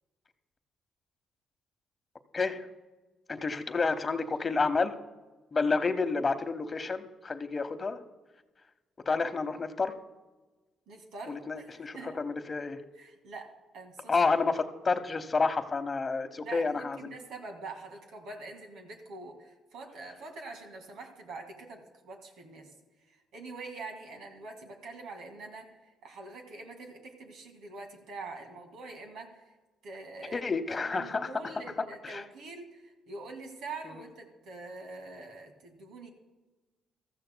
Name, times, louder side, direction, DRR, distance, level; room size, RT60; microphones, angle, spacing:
voice 1, 2.3-2.7 3.3-5.0 5.5-8.0 9.1-9.9 11.3-12.8 14.1-17.1 30.3-31.3 32.0-32.2, left 4 dB, 35° left, 9 dB, 0.9 m, -30 dB
voice 2, 10.9-12.2 13.0-14.3 16.4-22.7 23.3-25.7 26.0-29.4 29.8-36.1, right 3 dB, 80° right, 4 dB, 1.9 m, -45 dB
15.5 x 14.0 x 2.2 m, 1.2 s
cardioid pair, 90°, 0 cm